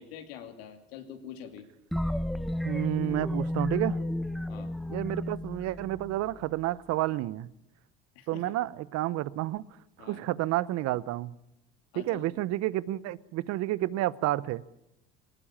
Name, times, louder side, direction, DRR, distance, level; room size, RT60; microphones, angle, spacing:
voice 1, 0.0-1.6 4.5-4.7 8.1-8.5 10.0-10.2 11.9-12.3, left 8 dB, 85° left, 7 dB, 2.7 m, -45 dB
sound 1, 1.9-6.6, left 1 dB, ahead, 1.0 m, -32 dB
voice 2, 2.6-4.0 4.9-7.5 8.3-9.6 10.0-11.3 12.0-14.6, right 15 dB, 60° right, 20 dB, 0.8 m, -30 dB
19.5 x 19.5 x 8.7 m, 0.84 s
supercardioid pair, 90°, 30 cm